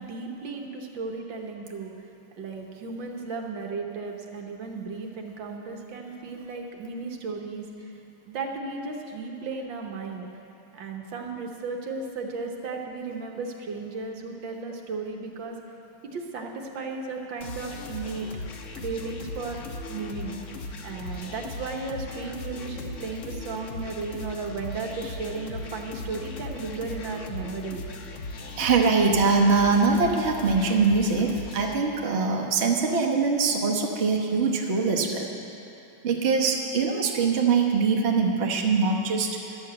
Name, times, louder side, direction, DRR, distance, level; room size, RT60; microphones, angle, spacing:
voice 1, 0.0-1.9 2.4-7.9 8.3-10.3 10.7-15.5 16.0-18.3 18.8-19.6 19.9-20.3 20.8-27.8, right 4 dB, 65° right, 2 dB, 1.6 m, -35 dB
sound 1, 17.4-31.7, left 3 dB, 60° left, 0.8 m, -38 dB
voice 2, 28.6-35.3 36.0-39.4, right 4 dB, 45° right, 0 dB, 1.0 m, -23 dB
12.0 x 7.1 x 8.6 m, 2.8 s
omnidirectional pair, 2.3 m